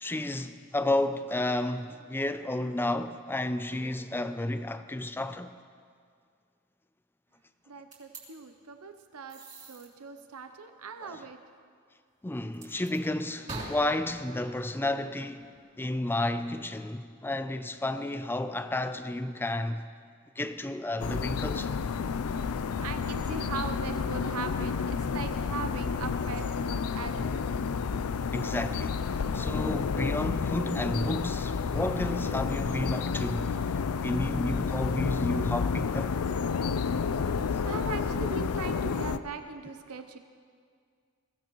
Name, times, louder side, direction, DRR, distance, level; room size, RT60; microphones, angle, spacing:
voice 1, 0.0-5.5 11.0-11.1 12.2-15.5 15.8-19.9 20.4-21.8 28.3-33.6 34.0-36.2, left 1 dB, 10° left, 0.4 m, -31 dB
voice 2, 7.7-9.4 9.7-11.6 21.9-27.9 37.3-40.2, right 5 dB, 75° right, 0.7 m, -40 dB
sound 1, 7.9-8.2 9.3-9.9 12.5-13.0 13.5-15.7, right 2 dB, 35° right, 3.2 m, -44 dB
sound 2, 21.0-39.2, left 5 dB, 70° left, 0.5 m, -30 dB
22.0 x 15.5 x 3.1 m
head